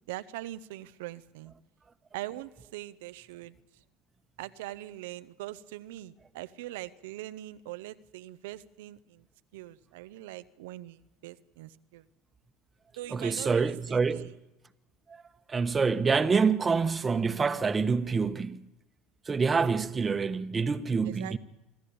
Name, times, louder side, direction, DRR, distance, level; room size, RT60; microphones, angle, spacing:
voice 1, 0.1-1.5 2.1-3.6 4.4-9.3 9.5-12.0 13.0-14.3 21.0-21.4, right 16 dB, 75° right, 0.8 m, -42 dB
voice 2, 13.1-14.3 15.1-15.2 15.5-18.6 19.2-21.4, right 5 dB, 25° right, 1.3 m, -26 dB
26.5 x 13.5 x 8.6 m
hypercardioid pair, 75°, 0 cm